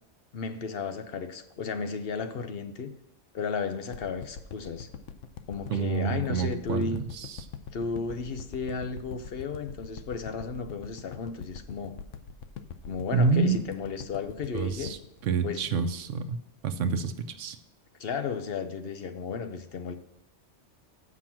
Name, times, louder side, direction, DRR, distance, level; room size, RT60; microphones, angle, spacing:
voice 1, 0.3-2.9 3.3-4.9 5.5-7.0 7.7-12.0 12.9-15.0 15.4-15.8 18.0-19.9, left 5 dB, 60° left, 9 dB, 0.8 m, -34 dB
sound 1, 3.9-16.3 16.7-16.8, left 7 dB, 90° left, 1.0 m, -43 dB
voice 2, 5.7-7.0 7.3-7.4 13.1-13.6 14.5-15.0 15.2-16.4 16.6-17.6, right 5 dB, 90° right, 10 dB, 1.1 m, -27 dB
7.4 x 6.1 x 5.8 m, 0.83 s
omnidirectional pair, 1.2 m